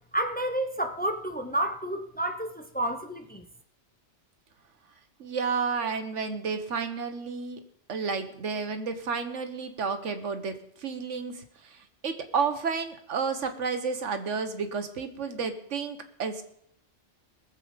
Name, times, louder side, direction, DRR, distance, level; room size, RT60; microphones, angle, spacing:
voice 1, 0.1-3.5, right 1 dB, 10° left, 6 dB, 0.8 m, -30 dB
voice 2, 5.2-7.6 7.9-16.4, right 5 dB, 75° right, 8 dB, 1.5 m, -31 dB
20.0 x 7.4 x 5.1 m, 0.71 s
omnidirectional pair, 1.2 m